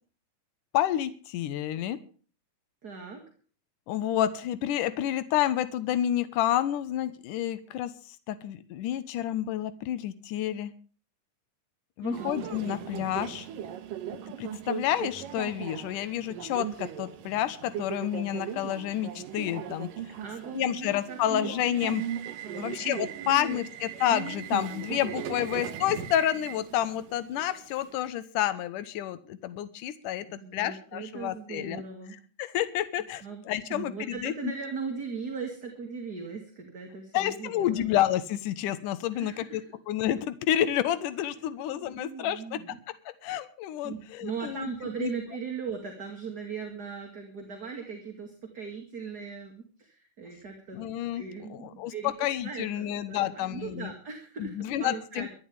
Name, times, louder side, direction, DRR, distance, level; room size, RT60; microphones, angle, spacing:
voice 1, 0.7-2.0 3.9-10.7 12.0-13.5 14.4-19.9 20.5-22.1 22.6-30.3 30.5-31.8 32.4-34.3 37.1-42.6 43.2-44.7 45.0-45.1 50.7-51.2 51.5-53.9 54.4-55.3, left 12 dB, 80° left, 12 dB, 2.6 m, -29 dB
voice 2, 2.8-3.2 12.0-12.3 20.2-21.8 22.4-22.9 23.2-23.6 25.1-25.6 30.2-32.2 33.2-33.4 33.7-37.8 39.1-39.6 41.7-42.8 43.8-50.8 51.1-55.3, right 5 dB, 30° right, 3 dB, 2.6 m, -39 dB
Subway metro underground, 12.1-28.1, right 10 dB, 85° right, 2.9 m, -38 dB
23.5 x 11.5 x 3.5 m, 0.40 s
omnidirectional pair, 3.7 m